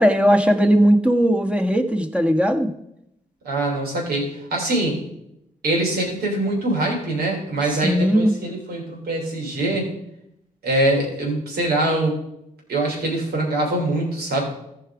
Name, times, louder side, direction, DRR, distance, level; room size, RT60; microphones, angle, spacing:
voice 1, 0.0-2.7 7.8-8.3, equal, 5° right, 6 dB, 1.4 m, -18 dB
voice 2, 3.4-5.0 5.6-9.9 10.6-12.2 12.7-14.5, right 1 dB, 75° right, 0 dB, 3.4 m, -23 dB
14.5 x 5.0 x 4.9 m, 0.80 s
supercardioid pair, 50°, 16 cm